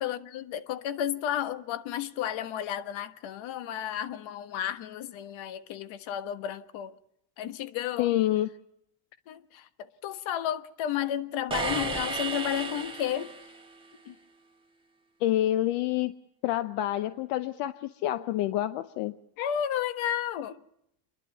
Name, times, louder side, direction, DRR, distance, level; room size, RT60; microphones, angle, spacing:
voice 1, 0.0-6.9 7.4-8.1 9.3-9.7 10.0-13.3 14.0-14.1 19.4-20.6, left 10 dB, 70° left, 1.4 m, -32 dB
voice 2, 8.0-8.5 15.2-16.1 16.4-19.1, left 13 dB, 90° left, 0.9 m, -27 dB
sound 1, 11.5-13.7, right 3 dB, 10° right, 2.0 m, -33 dB
28.0 x 11.5 x 8.3 m
cardioid pair, 105°, 49 cm